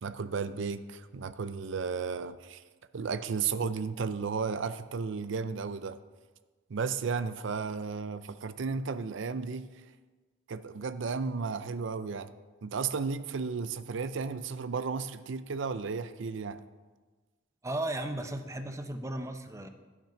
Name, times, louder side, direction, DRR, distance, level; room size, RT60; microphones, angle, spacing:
voice 1, 0.0-2.6 2.9-6.0 6.7-9.7 10.5-12.3 12.6-16.6, right 5 dB, 70° right, 12 dB, 0.5 m, -34 dB
voice 2, 17.6-19.7, right 1 dB, 15° right, 6 dB, 0.7 m, -35 dB
13.0 x 6.1 x 5.7 m, 1.3 s
head